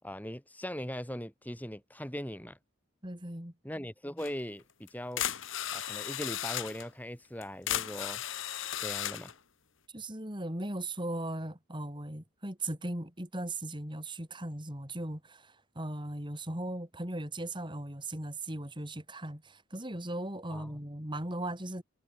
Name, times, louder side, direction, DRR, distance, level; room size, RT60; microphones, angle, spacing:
voice 1, 0.0-2.6 3.6-5.2 5.7-8.2 8.8-9.3 20.5-20.7, equal, 5° left, 3.7 m, -40 dB
voice 2, 3.0-3.5 9.9-21.8, right 1 dB, 20° right, 4.3 m, -38 dB
sound 1, 4.2-4.3 4.9-5.0 5.2-6.9 7.4-9.3, left 11 dB, 60° left, 1.7 m, -35 dB
head